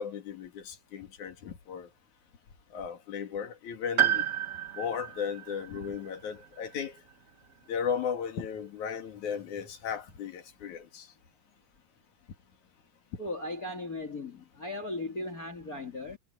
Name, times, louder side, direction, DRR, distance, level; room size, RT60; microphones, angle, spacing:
voice 1, 0.0-1.9 2.7-4.3 4.8-7.0 7.7-11.1, left 7 dB, 70° left, 3.7 m, -35 dB
Piano, 4.0-8.1 9.4-9.5, right 11 dB, 40° right, 1.2 m, -32 dB
voice 2, 13.2-16.2, left 2 dB, 30° left, 2.8 m, -37 dB
omnidirectional pair, 3.6 m